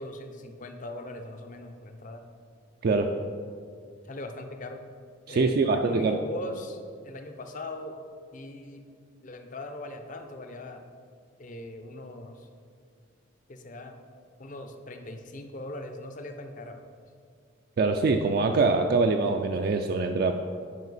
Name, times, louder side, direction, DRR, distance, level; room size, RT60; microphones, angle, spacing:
voice 1, 0.0-2.2 4.0-4.8 5.3-8.0 8.3-8.8 9.2-10.8 11.4-12.5 13.5-14.0 14.4-16.8, left 1 dB, 40° left, 6 dB, 0.5 m, -40 dB
voice 2, 2.8-3.2 5.3-6.2 17.8-20.3, right 3 dB, 45° right, 4 dB, 0.3 m, -24 dB
9.3 x 5.1 x 4.1 m, 2.2 s
head